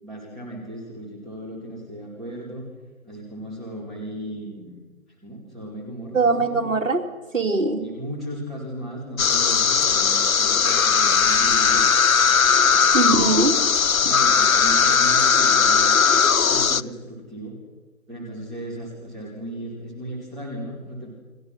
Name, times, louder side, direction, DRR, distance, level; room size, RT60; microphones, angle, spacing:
voice 1, 0.0-2.6 3.0-4.8 5.2-6.6 7.8-11.9 13.3-13.6 14.0-17.6 18.1-21.1, right 1 dB, ahead, -10 dB, 2.4 m, -36 dB
voice 2, 6.1-7.0 7.3-7.8 12.9-13.5, right 3 dB, 60° right, 2 dB, 3.6 m, -21 dB
sound 1, 9.2-16.8, left 6 dB, 70° left, 0.8 m, -18 dB
29.5 x 24.5 x 6.1 m, 1.3 s
figure-of-eight pair, 165°, 43 cm